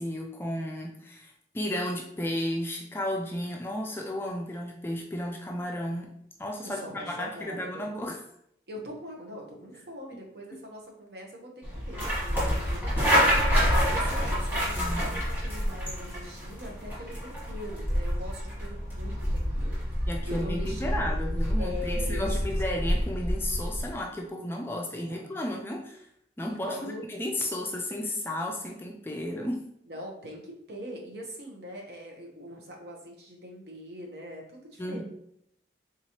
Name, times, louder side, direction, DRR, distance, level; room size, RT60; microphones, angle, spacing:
voice 1, 0.0-6.1 6.4-8.2 14.7-15.3 20.1-26.1 26.4-29.6 34.8-35.0, left 1 dB, 15° left, 0 dB, 0.3 m, -33 dB
voice 2, 6.6-7.9 8.7-21.0 21.6-22.6 24.9-25.3 26.5-27.0 29.9-35.0, equal, 65° right, 0 dB, 0.9 m, -42 dB
sound 1, 11.6-23.9, equal, 10° right, 1.2 m, -28 dB
3.6 x 3.0 x 2.8 m, 0.73 s
head